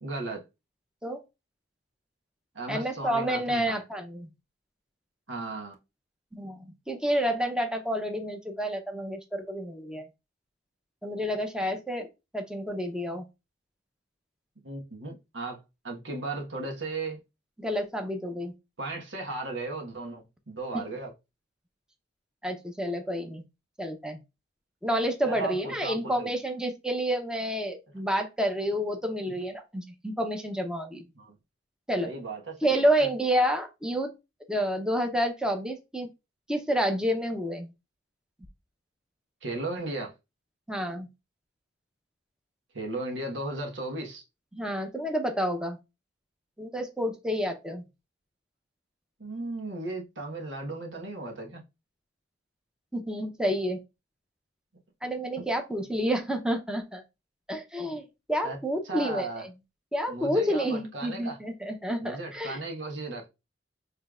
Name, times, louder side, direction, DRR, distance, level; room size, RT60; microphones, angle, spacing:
voice 1, 0.0-0.4 2.5-3.8 5.3-5.7 14.6-17.2 18.8-21.1 25.2-26.3 31.1-31.4 32.0-32.9 39.4-40.1 42.7-44.2 49.2-51.6 58.4-58.6 58.8-59.4 60.1-61.4 62.0-63.3, right 2 dB, 85° right, 1.4 m, -36 dB
voice 2, 2.7-4.3 6.3-10.0 11.0-12.1 12.3-13.2 17.6-18.5 20.7-20.8 22.4-23.4 23.8-24.2 24.8-31.0 31.9-32.1 32.6-34.1 34.5-36.1 36.5-37.7 40.7-41.1 44.5-45.8 46.6-47.8 52.9-53.8 55.0-57.0 57.5-58.0 58.3-59.5 59.9-62.6, equal, 5° right, 0.8 m, -29 dB
6.7 x 3.2 x 2.4 m
head